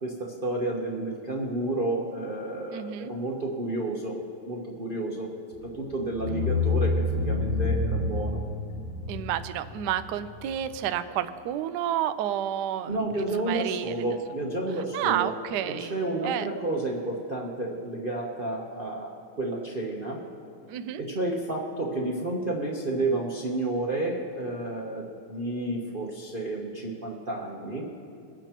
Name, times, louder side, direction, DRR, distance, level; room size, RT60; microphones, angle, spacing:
voice 1, 0.0-4.2 4.5-5.3 5.6-8.4 12.9-15.3 15.8-19.1 19.4-20.2 21.0-25.0 25.3-27.9, right 2 dB, 40° right, -2 dB, 0.7 m, -31 dB
voice 2, 2.7-3.1 9.1-14.0 14.8-16.5 20.7-21.0, right 11 dB, 80° right, 11 dB, 0.9 m, -30 dB
sound 1, 5.5-5.7 6.1-10.8, left 3 dB, 90° left, 2.8 m, -28 dB
25.0 x 8.9 x 3.0 m, 2.4 s
omnidirectional pair, 2.3 m